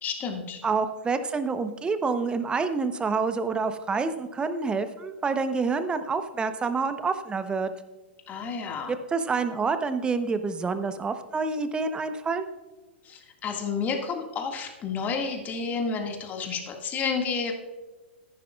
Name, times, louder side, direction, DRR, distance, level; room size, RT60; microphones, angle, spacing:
voice 1, 0.0-0.6 8.3-8.9 13.0-17.5, left 5 dB, 25° left, 3 dB, 1.9 m, -30 dB
voice 2, 0.6-7.7 8.9-12.5, right 4 dB, 15° right, 10 dB, 0.9 m, -27 dB
14.0 x 11.0 x 2.4 m, 1.2 s
hypercardioid pair, 105°, 6 cm